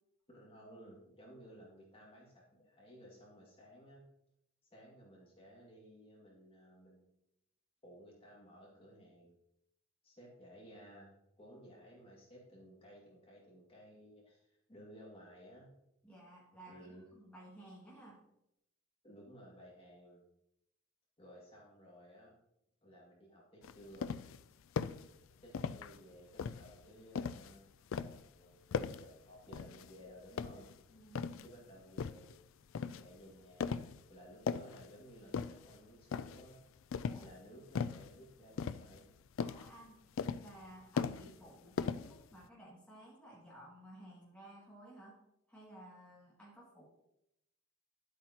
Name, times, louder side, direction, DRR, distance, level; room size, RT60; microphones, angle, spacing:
voice 1, 0.3-4.0 4.7-7.1 7.8-9.4 10.0-11.1 11.4-15.7 16.7-17.1 19.0-20.2 21.2-22.3 22.8-24.1 24.9-25.0 25.4-30.7 31.4-32.3 32.8-36.6 37.2-39.1, equal, 25° left, -4 dB, 2.1 m, -57 dB
voice 2, 16.0-18.2 30.9-31.5 37.0-37.3 39.4-40.0 40.4-45.2 45.5-46.8, right 1 dB, 5° left, -6 dB, 2.1 m, -55 dB
sound 1, 23.6-24.4 24.8-25.1 25.5-26.0 26.4-27.5 27.9-28.3 28.7-29.1 29.5-29.9 30.3-31.5 32.0-32.3 32.8-33.1 33.6-34.0 34.3-34.9 35.3-35.8 36.1-36.5 36.9-37.3 37.8-38.1 38.6-39.1 39.4-39.7 40.2-40.7 41.0-41.5 41.8-42.4, left 6 dB, 60° left, 0.3 m, -38 dB
11.0 x 8.4 x 2.9 m, 0.82 s
head